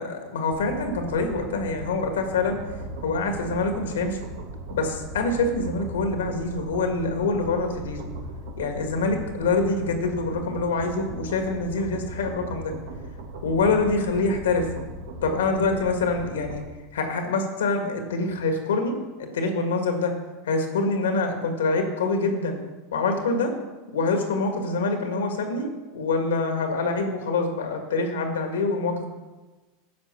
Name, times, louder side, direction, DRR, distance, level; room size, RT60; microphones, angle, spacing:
voice 1, 0.0-2.6 3.0-4.2 4.7-8.1 8.6-12.7 13.4-14.7 15.2-16.6 16.9-20.1 20.4-22.6 22.9-23.5 23.9-29.1, left 3 dB, 85° left, 5 dB, 1.7 m, -25 dB
sound 1, 0.5-16.7, right 2 dB, 70° right, 1.3 m, -38 dB
10.5 x 5.3 x 6.8 m, 1.2 s
hypercardioid pair, 95°, 0 cm